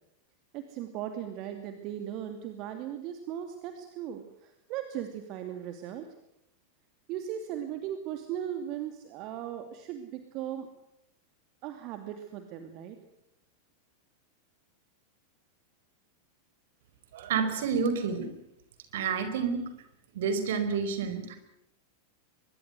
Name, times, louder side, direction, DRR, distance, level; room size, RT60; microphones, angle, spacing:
voice 1, 0.5-6.1 7.1-10.7 11.6-13.0, right 10 dB, 40° right, 7 dB, 2.6 m, -38 dB
voice 2, 17.1-18.3 18.9-19.6 20.1-21.4, right 6 dB, 55° right, 9 dB, 4.6 m, -29 dB
24.0 x 22.5 x 8.1 m, 0.80 s
figure-of-eight pair, 90°, 0 cm